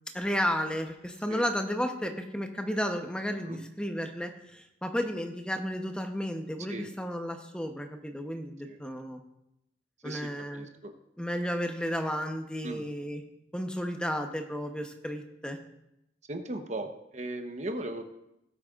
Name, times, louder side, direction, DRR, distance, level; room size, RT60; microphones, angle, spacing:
voice 1, 0.1-9.2 10.0-10.7 11.2-13.2 13.5-15.6, equal, 5° left, 4 dB, 0.9 m, -33 dB
voice 2, 10.0-10.9 12.6-12.9 16.3-18.0, right 1 dB, 40° right, 5 dB, 1.0 m, -37 dB
19.0 x 8.4 x 2.5 m, 0.84 s
head